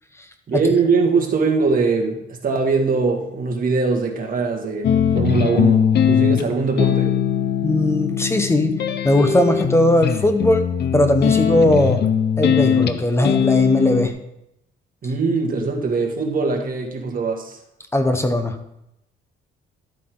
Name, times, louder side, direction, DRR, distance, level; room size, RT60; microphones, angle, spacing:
voice 1, 0.5-7.2 15.0-17.6, right 4 dB, 45° right, 1 dB, 2.2 m, -21 dB
sound 1, 4.8-14.1, left 8 dB, 55° left, 0.9 m, -20 dB
voice 2, 7.6-10.7 10.9-12.1 12.4-14.1 17.9-18.6, left 1 dB, 15° left, 7 dB, 1.1 m, -19 dB
12.5 x 8.3 x 3.9 m, 0.81 s
cardioid pair, 100°, 20 cm